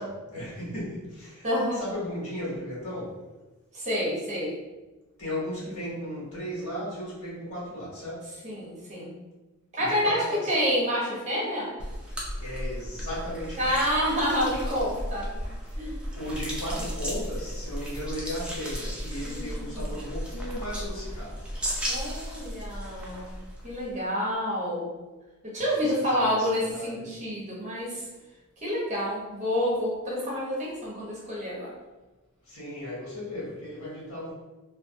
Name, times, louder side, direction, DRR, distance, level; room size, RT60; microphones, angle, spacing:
voice 1, 0.0-3.2 5.2-8.3 9.8-10.5 12.4-13.7 15.7-15.8 16.1-21.4 25.6-27.1 32.4-34.3, equal, 90° left, -7 dB, 1.3 m, -36 dB
voice 2, 1.4-1.8 3.7-4.6 8.4-9.1 9.7-11.7 13.5-15.5 15.8-16.0 19.2-19.9 21.9-23.4 23.6-24.9 25.4-28.1 28.6-31.7, equal, 35° right, -5 dB, 0.8 m, -28 dB
sound 1, 11.8-24.0, equal, 5° right, 0.4 m, -35 dB
2.4 x 2.3 x 2.5 m, 1.1 s
head